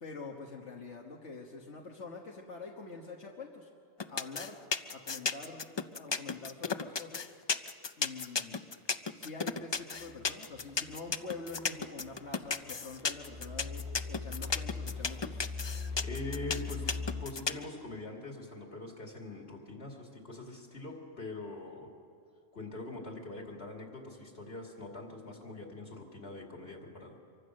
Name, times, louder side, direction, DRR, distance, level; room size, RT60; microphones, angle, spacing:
voice 1, 0.0-3.7 4.1-4.6 4.9-7.3 8.0-8.7 9.1-15.6, left 4 dB, 85° left, -1 dB, 1.8 m, -45 dB
sound 1, 4.0-17.6, left 5 dB, 35° left, 0.4 m, -33 dB
sound 2, 10.0-17.3, left 4 dB, 25° right, 1.6 m, -42 dB
voice 2, 16.0-21.9 22.5-27.2, left 2 dB, 65° left, 1 dB, 2.9 m, -43 dB
25.0 x 24.0 x 6.5 m, 2.3 s
omnidirectional pair, 1.2 m